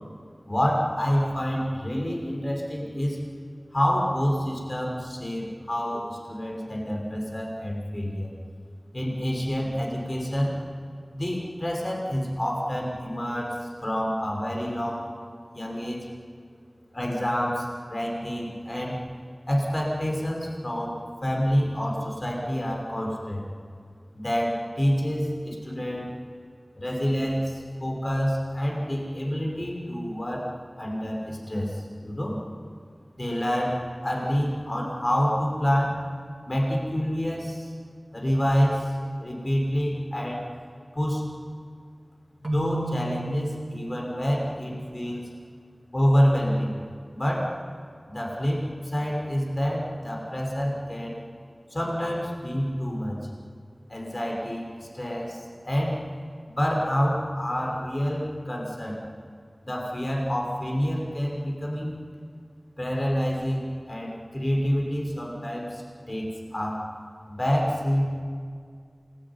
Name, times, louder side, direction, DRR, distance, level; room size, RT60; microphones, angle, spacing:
voice 1, 0.5-3.2 3.7-8.3 8.9-10.6 11.1-15.1 15.5-16.1 16.9-19.0 19.5-21.0 21.2-23.4 24.1-26.1 26.8-30.4 30.8-32.3 33.2-36.0 36.5-37.7 38.1-40.4 40.9-41.3 42.4-45.2 45.9-46.8 47.1-47.5 48.1-51.2 51.7-53.2 53.9-54.7 54.9-56.0 56.5-59.0 59.6-62.0 62.8-65.8 66.1-66.9 67.3-68.0, equal, 45° left, -1 dB, 6.0 m, -27 dB
Keyboard (musical), 42.4-44.3, right 4 dB, 55° right, 2.2 m, -35 dB
28.0 x 20.5 x 10.0 m, 2.1 s
wide cardioid pair, 50°, 0 cm